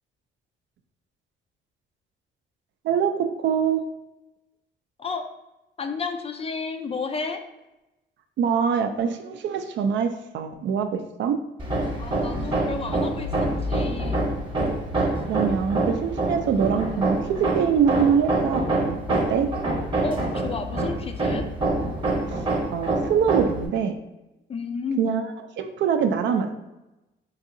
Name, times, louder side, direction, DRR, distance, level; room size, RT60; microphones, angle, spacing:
voice 1, 2.8-3.8 8.4-11.4 15.3-17.2 17.5-19.0 19.3-19.5 22.3-22.4 22.7-23.9 25.0-26.5, right 7 dB, 65° right, 7 dB, 0.4 m, -24 dB
voice 2, 5.8-7.4 12.0-13.3 13.6-14.3 20.0-21.5 24.5-25.2, left 4 dB, 30° left, 6 dB, 0.4 m, -32 dB
Hammer, 11.6-23.7, right 2 dB, 25° right, 0.9 m, -26 dB
3.9 x 2.7 x 2.6 m, 0.98 s
cardioid pair, 90°, 20 cm